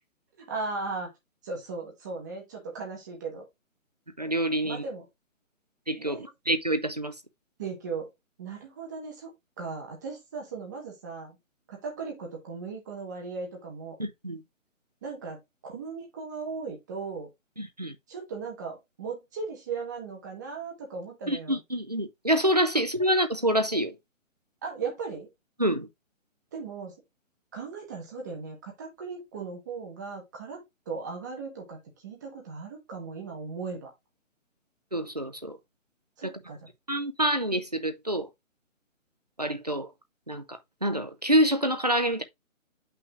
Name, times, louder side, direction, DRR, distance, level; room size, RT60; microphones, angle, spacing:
voice 1, 0.5-1.1 1.4-3.4 4.6-5.0 6.0-6.3 7.6-8.1 8.4-9.3 9.6-11.4 11.7-13.9 15.0-15.4 15.6-17.3 18.1-21.6 24.6-25.3 26.5-26.9 27.5-31.8 32.0-33.9 36.2-36.7, right 4 dB, 15° right, 1.3 m, -37 dB
voice 2, 4.2-4.8 5.9-7.1 14.0-14.4 17.6-17.9 21.3-23.9 25.6-25.9 34.9-35.6 36.2-36.3 36.9-38.3 39.4-39.9 40.3-42.2, right 1 dB, 30° right, 0.5 m, -27 dB
8.0 x 5.7 x 2.4 m
hypercardioid pair, 175°, 40 cm